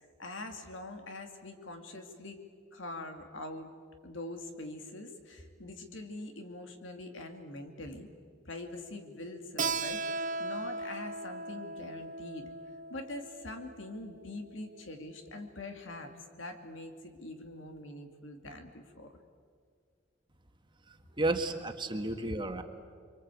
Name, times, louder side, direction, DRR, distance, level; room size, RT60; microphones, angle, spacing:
voice 1, 0.2-2.4 2.7-3.7 4.0-8.1 8.5-12.4 12.9-19.1, left 2 dB, 80° left, 5 dB, 2.6 m, -44 dB
Keyboard (musical), 9.6-14.9, right 3 dB, 45° right, 0.9 m, -38 dB
voice 2, 20.9-22.6, right 2 dB, 25° right, 5 dB, 1.7 m, -33 dB
29.5 x 23.5 x 8.4 m, 2.1 s
head